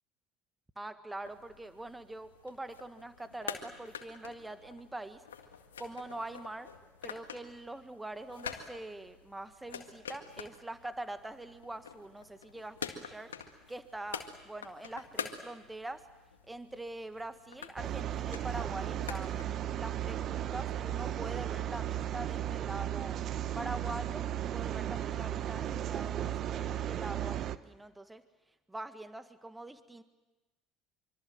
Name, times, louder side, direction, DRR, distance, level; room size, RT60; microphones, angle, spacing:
voice 1, 0.8-5.2 5.8-6.7 7.0-13.3 13.7-16.0 16.5-19.4 19.8-23.2 23.5-28.2 28.7-30.0, right 2 dB, 10° right, 10 dB, 1.6 m, -44 dB
sound 1, 1.2-19.4, left 7 dB, 90° left, 1.9 m, -47 dB
sound 2, 17.8-27.6, right 11 dB, 50° right, 1.0 m, -35 dB
26.0 x 24.5 x 7.9 m, 1.1 s
hypercardioid pair, 70°, 0 cm